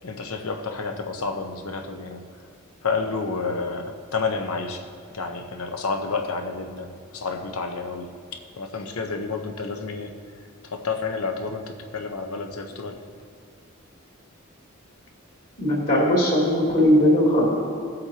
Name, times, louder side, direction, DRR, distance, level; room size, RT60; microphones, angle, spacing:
voice 1, 0.0-2.2 2.8-4.9 5.1-10.3 10.6-13.0, left 4 dB, 85° left, 5 dB, 0.9 m, -30 dB
voice 2, 15.6-17.5, equal, 45° left, -5 dB, 2.8 m, -19 dB
17.5 x 7.8 x 2.9 m, 2.2 s
head